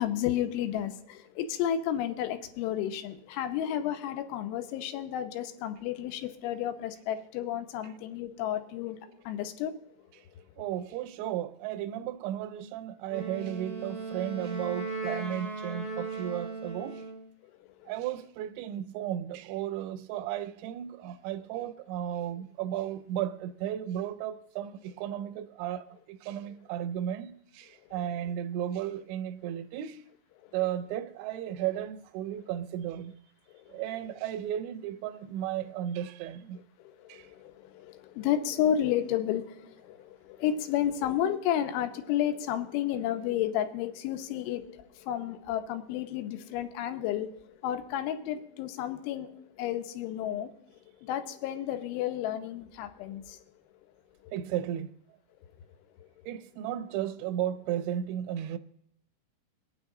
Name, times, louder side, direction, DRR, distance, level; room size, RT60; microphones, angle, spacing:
voice 1, 0.0-9.8 10.4-10.5 17.5-17.9 33.5-33.8 36.8-50.5 50.8-53.4 54.2-54.3 56.0-56.1, left 10 dB, 85° left, 3.4 m, -32 dB
voice 2, 10.6-17.1 17.9-30.0 30.5-33.1 33.7-36.6 37.1-37.3 54.3-54.9 56.3-58.6, right 11 dB, 85° right, 2.8 m, -34 dB
Wind instrument woodwind instrument, 13.1-17.3, right 3 dB, 25° right, 1.0 m, -37 dB
22.5 x 9.5 x 3.8 m
omnidirectional pair, 5.3 m